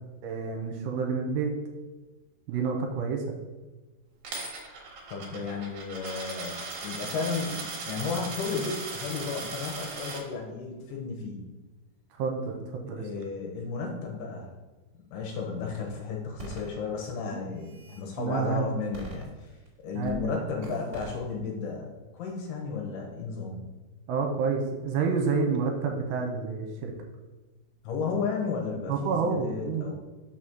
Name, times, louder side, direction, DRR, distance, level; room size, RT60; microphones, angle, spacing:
voice 1, 0.2-1.5 2.5-3.4 12.2-13.1 18.2-18.7 19.9-20.4 24.1-26.9 28.9-29.8, right 5 dB, 80° right, 2 dB, 2.8 m, -29 dB
Coin (dropping), 4.2-10.2, right 3 dB, 60° right, 2.6 m, -38 dB
voice 2, 5.1-11.4 13.0-14.5 15.1-19.5 19.8-23.6 27.8-29.9, left 5 dB, 75° left, 0 dB, 2.7 m, -33 dB
sound 1, 16.4-16.7 17.4-18.0 18.9-19.7 20.0-20.2 20.6-21.2, right 2 dB, 30° right, 1.2 m, -42 dB
6.2 x 4.0 x 6.2 m, 1.2 s
omnidirectional pair, 5.0 m